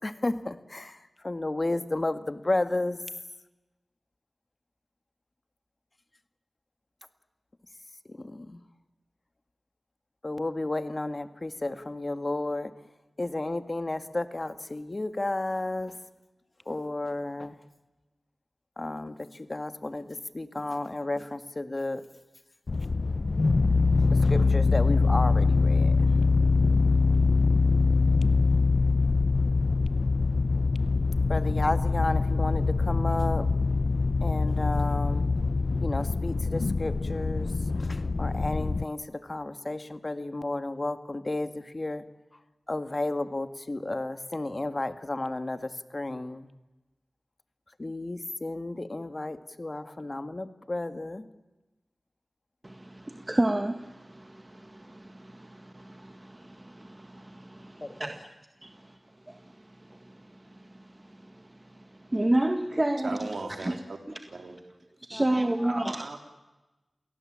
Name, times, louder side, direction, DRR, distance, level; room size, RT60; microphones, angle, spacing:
voice 1, 0.0-3.0 8.1-8.6 10.2-12.7 13.2-16.0 16.7-17.6 18.8-22.1 24.1-26.1 31.3-33.5 34.2-35.3 35.8-42.1 42.7-46.5 47.8-51.3 57.8-58.0 65.1-65.2 65.7-66.0, left 2 dB, 40° left, 11 dB, 1.8 m, -32 dB
sound 1, 22.7-38.8, left 4 dB, 65° left, 0.7 m, -24 dB
voice 2, 52.6-58.2 58.6-59.0 59.3-63.3 63.6-63.8 65.0-66.0, right 1 dB, 25° right, 7 dB, 1.7 m, -31 dB
voice 3, 63.0-64.0 64.3-64.6 65.7-66.2, right 3 dB, 75° right, 5 dB, 3.4 m, -37 dB
28.5 x 18.0 x 8.8 m, 1.1 s
cardioid pair, 50°, 0 cm